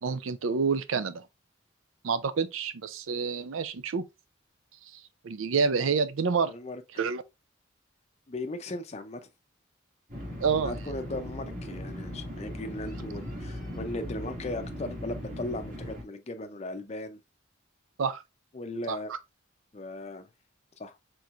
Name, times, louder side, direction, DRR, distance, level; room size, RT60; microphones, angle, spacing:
voice 1, 0.0-1.2 2.0-4.0 5.2-6.5 7.0-7.2 10.4-10.7 18.0-18.2 18.9-19.2, right 5 dB, 80° right, 0.5 m, -28 dB
voice 2, 6.5-6.8 8.3-9.2 10.5-17.2 18.5-19.1 19.7-20.3 20.8-21.0, left 2 dB, 35° left, 0.5 m, -37 dB
sound 1, 10.1-16.0, equal, 40° right, 1.7 m, -38 dB
4.5 x 3.9 x 2.4 m
head